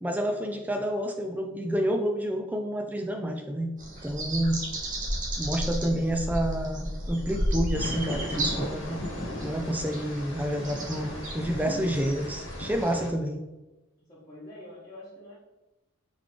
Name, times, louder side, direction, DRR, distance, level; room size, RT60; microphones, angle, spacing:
voice 1, 0.0-3.7 4.0-4.6 5.4-9.0 9.4-13.4, equal, 10° right, 4 dB, 0.3 m, -29 dB
sound 1, 3.8-12.9, right 1 dB, 40° right, 0.9 m, -34 dB
sound 2, 7.7-13.1, left 1 dB, 85° left, 1.1 m, -37 dB
voice 2, 12.8-13.2 14.0-15.4, left 1 dB, 20° left, -10 dB, 1.2 m, -46 dB
3.8 x 3.5 x 3.2 m, 1.1 s
head